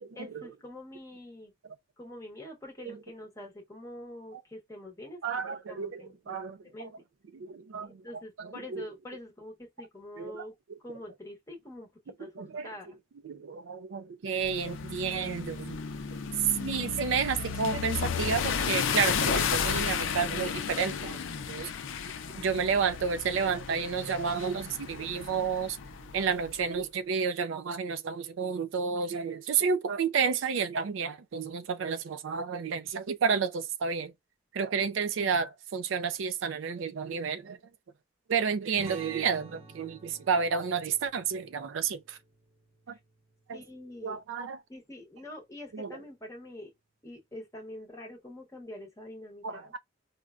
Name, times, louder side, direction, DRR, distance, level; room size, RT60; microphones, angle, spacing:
voice 1, 0.1-1.5 2.0-5.2 5.7-6.4 6.6-6.9 7.8-11.9 12.2-13.0 42.9-43.0 43.5-44.2 44.7-46.7 47.0-49.7, left 1 dB, 15° left, 0.9 m, -45 dB
voice 2, 5.2-6.9 7.3-8.9 10.2-10.4 10.9-11.0 12.4-12.7 13.2-15.8 16.6-21.2 21.5-21.7 22.3-25.8 26.1-34.1 34.5-37.6 38.3-42.2 42.9-43.0 43.5-43.6 44.0-44.6 45.7-46.0 49.4-49.8, right 6 dB, 75° right, 0.4 m, -31 dB
sound 1, 14.4-26.5, left 6 dB, 75° left, 0.5 m, -33 dB
sound 2, 38.7-43.9, right 2 dB, 30° right, 0.9 m, -52 dB
5.0 x 2.1 x 2.3 m
head